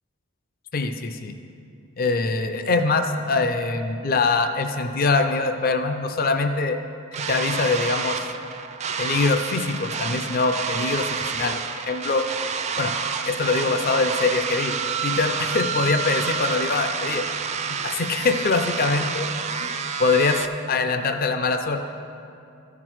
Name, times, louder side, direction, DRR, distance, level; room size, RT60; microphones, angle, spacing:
voice 1, 0.7-1.3 2.0-6.8 7.3-8.3 9.0-12.3 12.8-12.9 13.2-14.7 15.0-17.2 17.8-19.3 19.6-19.7 20.0-21.8, left 3 dB, 45° left, 7 dB, 0.5 m, -23 dB
sound 1, 7.1-20.5, right 6 dB, 35° right, 0.4 m, -29 dB
14.5 x 5.9 x 4.6 m, 2.7 s
head